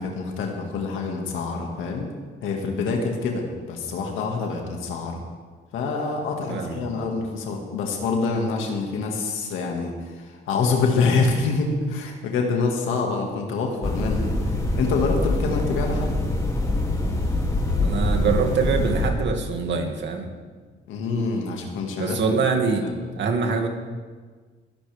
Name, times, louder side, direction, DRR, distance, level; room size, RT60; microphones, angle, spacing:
voice 1, 0.0-2.1 2.4-5.2 5.7-16.1 20.9-22.2 22.8-22.9, left 4 dB, 90° left, 1 dB, 2.0 m, -26 dB
voice 2, 6.5-7.1 17.8-20.3 22.0-22.8 23.2-23.7, right 5 dB, 65° right, 3 dB, 2.2 m, -24 dB
sound 1, 13.8-19.1, left 2 dB, 15° left, 2.7 m, -24 dB
21.5 x 11.5 x 3.5 m, 1.5 s
cardioid pair, 90°, 20 cm